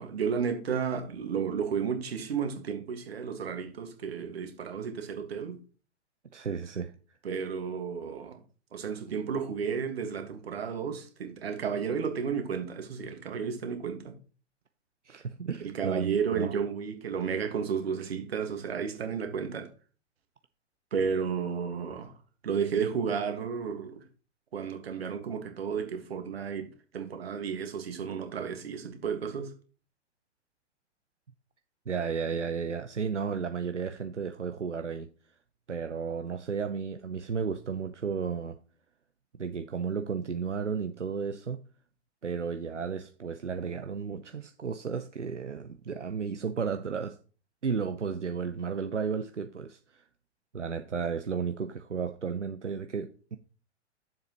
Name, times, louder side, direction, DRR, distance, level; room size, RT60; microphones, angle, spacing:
voice 1, 0.0-5.6 7.2-8.4 8.7-14.1 15.6-19.7 20.9-22.1 22.4-24.0 24.5-26.7 26.9-29.5, right 6 dB, 60° right, 1.8 m, -32 dB
voice 2, 6.3-6.9 15.0-16.5 31.9-35.1 35.7-38.6 39.4-41.6 42.2-47.2 47.6-50.0 50.5-53.4, right 6 dB, 85° right, 0.6 m, -33 dB
8.6 x 7.2 x 3.0 m
figure-of-eight pair, 115°, 35 cm